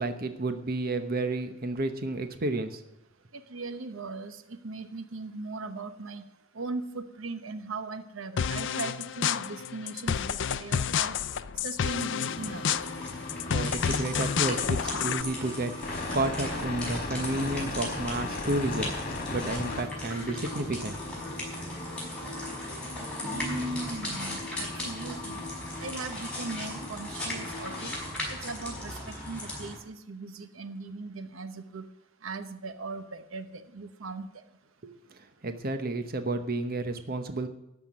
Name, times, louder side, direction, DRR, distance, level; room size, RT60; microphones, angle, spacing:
voice 1, 0.0-2.8 13.5-18.9 19.3-21.0 34.8-37.5, right 2 dB, 50° right, 8 dB, 1.0 m, -31 dB
voice 2, 3.3-6.2 6.5-11.2 11.6-12.6 23.2-25.5 25.8-27.9 28.3-31.9 32.2-34.3, right 3 dB, 85° right, 10 dB, 1.0 m, -39 dB
sound 1, 8.4-15.2, left 7 dB, 65° left, 0.5 m, -30 dB
sound 2, 11.8-28.2, left 2 dB, 45° left, 2.2 m, -39 dB
sound 3, 12.3-29.7, left 1 dB, 5° left, 5.5 m, -38 dB
13.5 x 6.0 x 9.3 m, 0.86 s
head